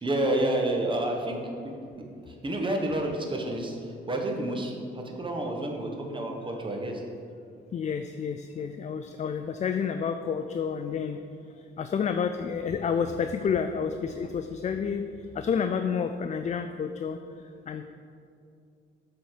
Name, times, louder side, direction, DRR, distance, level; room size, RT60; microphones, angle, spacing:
voice 1, 0.0-1.7 2.3-7.0, right 1 dB, 25° right, 1 dB, 1.3 m, -29 dB
voice 2, 7.7-11.2 11.6-15.1 15.3-17.2 17.7-17.8, left 6 dB, 35° left, 8 dB, 0.4 m, -29 dB
7.8 x 4.1 x 6.7 m, 2.4 s
cardioid pair, 90°, 20 cm